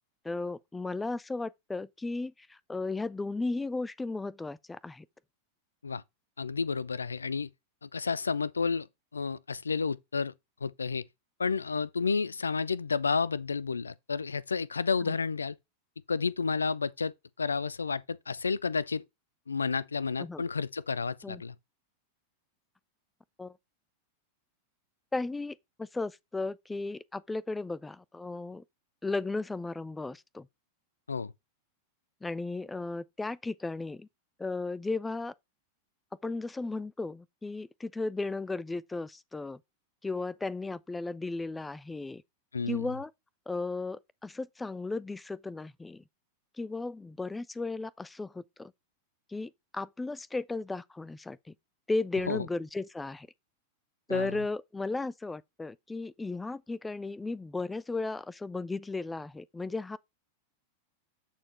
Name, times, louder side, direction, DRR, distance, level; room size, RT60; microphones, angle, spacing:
voice 1, 0.2-5.0 15.1-15.2 20.2-20.4 21.2-21.4 23.4-23.5 25.1-28.6 29.0-30.5 32.2-34.1 34.4-35.3 36.2-39.6 40.0-42.2 42.7-43.1 43.5-46.0 46.6-48.7 49.3-51.4 51.9-53.3 54.1-60.0, left 3 dB, 10° left, 0.4 m, -35 dB
voice 2, 6.4-7.5 7.8-8.9 9.1-10.3 10.6-11.0 11.4-15.6 16.1-19.0 19.5-21.5 31.1-31.3 42.5-42.9 52.3-52.5 54.1-54.4, left 5 dB, 75° left, 0.4 m, -31 dB
8.6 x 4.3 x 4.2 m
figure-of-eight pair, 90°, 0 cm